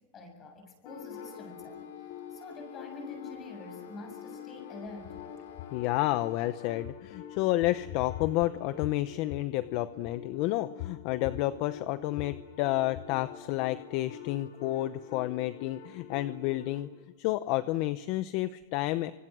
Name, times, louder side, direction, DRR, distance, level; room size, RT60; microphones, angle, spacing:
voice 1, 0.1-1.8 2.3-5.2, left 3 dB, 20° left, 4 dB, 7.3 m, -46 dB
sound 1, 0.9-16.9, left 9 dB, 65° left, 4.9 m, -46 dB
Wind instrument woodwind instrument, 1.0-6.7, left 9 dB, 80° left, 3.9 m, -53 dB
voice 2, 5.7-16.9 17.2-19.1, left 16 dB, 45° left, 13 dB, 0.8 m, -30 dB
30.0 x 25.5 x 6.2 m, 1.3 s
supercardioid pair, 160°, 0 cm